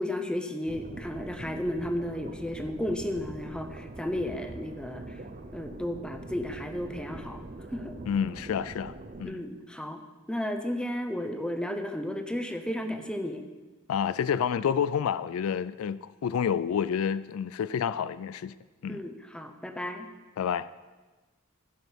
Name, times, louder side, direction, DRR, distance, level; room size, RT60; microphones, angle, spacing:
voice 1, 0.0-5.2 5.5-7.4 7.7-7.9 9.2-10.0 10.3-13.4 18.9-20.1, left 1 dB, 5° left, 0.7 m, -33 dB
sound 1, 0.7-9.2, right 2 dB, 40° right, 0.7 m, -43 dB
voice 2, 8.1-9.4 13.9-18.5 18.8-19.0 20.4-20.7, left 7 dB, 80° left, 0.3 m, -29 dB
15.0 x 6.2 x 5.2 m
head